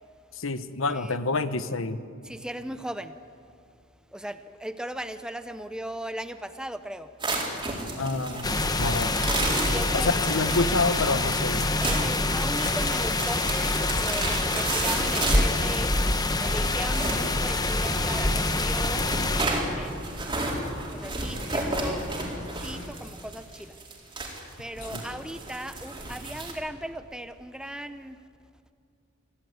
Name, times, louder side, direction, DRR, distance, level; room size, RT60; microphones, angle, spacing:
voice 1, 0.3-2.0 8.0-9.1 9.9-11.7 24.9-25.0, left 3 dB, 80° left, 12 dB, 1.1 m, -28 dB
voice 2, 2.2-3.2 4.1-7.1 9.6-10.1 10.5-10.6 11.8-15.9 16.4-19.0 19.4-20.6 20.9-23.8 24.6-28.2, right 1 dB, 5° right, 10 dB, 0.6 m, -38 dB
sound 1, 7.2-26.5, right 2 dB, 25° right, 4.3 m, -32 dB
sound 2, 8.4-19.4, left 2 dB, 20° left, 1.1 m, -26 dB
25.5 x 16.0 x 9.4 m, 2.4 s
head